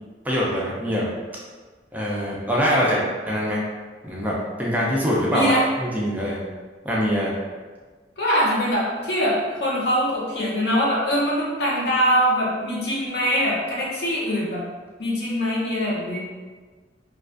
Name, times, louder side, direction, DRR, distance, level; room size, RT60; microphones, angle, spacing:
voice 1, 0.2-1.1 1.9-3.6 4.0-6.4 6.8-7.3, equal, 10° right, -5 dB, 0.4 m, -23 dB
voice 2, 5.3-5.6 8.2-14.6 15.0-16.2, equal, 65° left, -5 dB, 0.7 m, -23 dB
2.3 x 2.3 x 2.4 m, 1.4 s
head